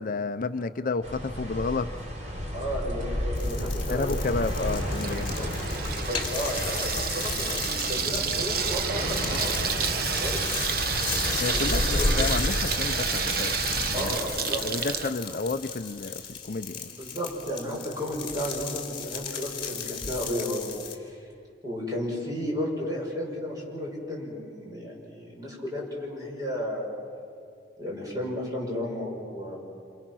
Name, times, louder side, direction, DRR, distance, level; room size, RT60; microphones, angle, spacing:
voice 1, 0.0-1.9 3.9-5.5 11.4-14.2 14.6-16.9, left 3 dB, 50° left, 10 dB, 0.6 m, -31 dB
sound 1, 1.0-14.2, equal, 40° right, 3.8 m, -32 dB
voice 2, 2.5-4.1 5.3-5.5 5.9-10.4 11.5-12.1 13.9-14.6 15.0-15.1 16.9-21.3 21.6-26.9 27.8-29.6, equal, 20° right, -3 dB, 6.7 m, -33 dB
sound 2, 3.4-21.0, left 6 dB, 30° left, 2.7 m, -36 dB
Water tap faucet / Sink (filling or washing), 3.9-15.1, right 6 dB, 55° right, 1.1 m, -30 dB
28.5 x 27.5 x 6.3 m, 2.4 s
head